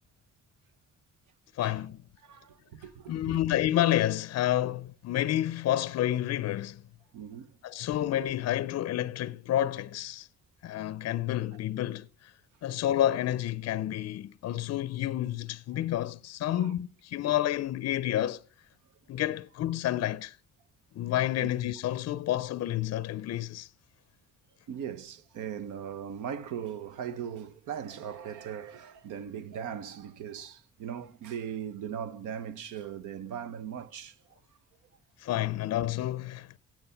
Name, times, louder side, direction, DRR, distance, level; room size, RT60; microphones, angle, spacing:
voice 1, 1.5-2.0 3.1-6.8 7.6-10.3 10.6-12.3 12.6-18.4 19.1-20.4 20.9-23.7 35.2-36.6, left 12 dB, 55° left, 0.5 m, -29 dB
voice 2, 2.2-3.4 7.1-7.6 16.5-16.7 21.4-21.5 24.7-34.4, right 8 dB, 85° right, 0.9 m, -39 dB
13.0 x 9.0 x 5.6 m
cardioid pair, 90°, 30 cm